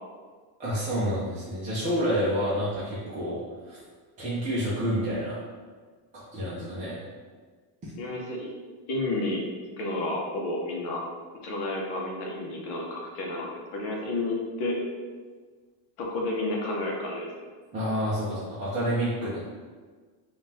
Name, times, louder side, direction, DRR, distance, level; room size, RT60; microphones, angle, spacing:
voice 1, 0.6-3.8 4.2-5.4 6.1-7.0 7.8-7.9 17.7-19.4, equal, 15° right, -10 dB, 0.5 m, -29 dB
voice 2, 8.0-8.5 8.9-9.4 9.8-11.0 11.4-14.8 16.0-17.3, left 2 dB, 50° left, -1 dB, 0.9 m, -31 dB
3.6 x 2.5 x 4.2 m, 1.5 s
cardioid pair, 175°, 49 cm